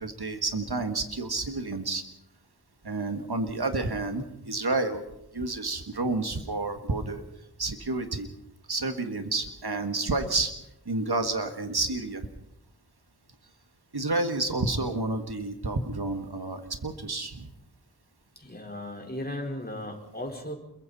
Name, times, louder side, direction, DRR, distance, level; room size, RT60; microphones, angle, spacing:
voice 1, 0.0-2.0 2.8-5.0 5.3-7.2 7.6-8.3 8.7-10.5 10.9-12.3 13.9-17.5, right 2 dB, 90° right, 7 dB, 1.7 m, -30 dB
voice 2, 18.4-20.6, left 1 dB, 25° left, 1 dB, 4.3 m, -36 dB
28.0 x 22.5 x 4.2 m, 0.82 s
wide cardioid pair, 45°, 38 cm